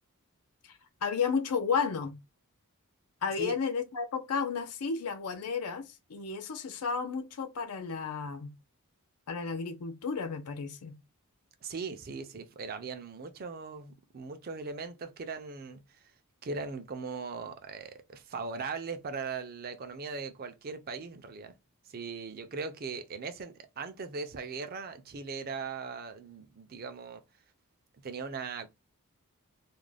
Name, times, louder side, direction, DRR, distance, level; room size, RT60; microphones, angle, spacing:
voice 1, 0.7-2.2 3.2-8.5 9.3-11.0, left 5 dB, 85° left, 0.5 m, -33 dB
voice 2, 11.6-16.1 16.4-21.5 21.8-27.2 28.0-28.7, right 4 dB, 40° right, 0.4 m, -39 dB
2.4 x 2.1 x 3.2 m
head